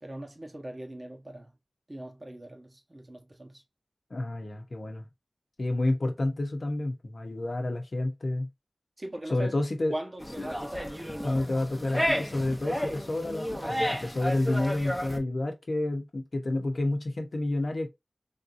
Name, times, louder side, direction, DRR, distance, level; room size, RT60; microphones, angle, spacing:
voice 1, 0.0-1.5 1.9-3.6 9.0-9.5 9.9-11.2 11.5-11.6, right 1 dB, 35° right, 1.0 m, -40 dB
voice 2, 4.1-5.1 5.6-8.5 9.3-9.9 10.4-10.5 11.2-17.9, left 2 dB, 70° left, 0.7 m, -29 dB
sound 1, 10.2-15.2, equal, 5° left, 0.8 m, -32 dB
3.5 x 2.7 x 2.5 m
wide cardioid pair, 50°, 0 cm